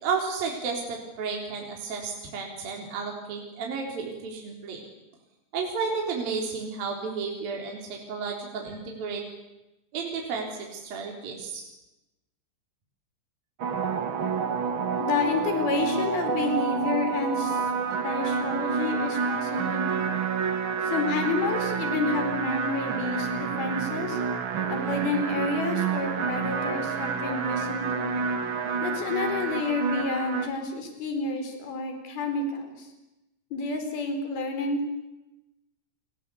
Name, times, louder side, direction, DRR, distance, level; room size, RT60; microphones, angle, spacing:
voice 1, 0.0-4.8 5.5-9.2 9.9-11.6, right 5 dB, 55° right, 1 dB, 5.3 m, -32 dB
sound 1, 13.6-30.5, right 5 dB, 80° right, 1.1 m, -29 dB
voice 2, 15.0-17.7 18.0-20.1 20.8-24.2 24.7-28.1 28.8-32.9 33.5-34.9, left 3 dB, 55° left, 6 dB, 6.2 m, -30 dB
29.5 x 22.5 x 8.4 m, 0.96 s
omnidirectional pair, 5.2 m